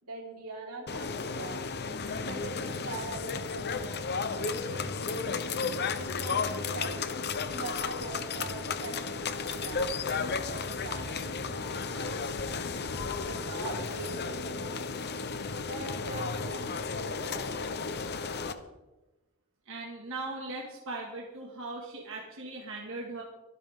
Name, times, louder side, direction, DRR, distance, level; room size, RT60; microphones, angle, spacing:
voice 1, 0.0-1.7 2.0-4.0 4.3-5.5 5.9-7.0 7.4-10.0 10.5-12.4 13.0-14.9 15.7-17.7, right 2 dB, 90° right, -1 dB, 4.5 m, -42 dB
sound 1, 0.9-18.5, left 4 dB, 50° left, 1.0 m, -34 dB
voice 2, 19.7-23.2, right 2 dB, 60° right, -2 dB, 2.2 m, -39 dB
24.5 x 10.0 x 3.8 m, 1.1 s
head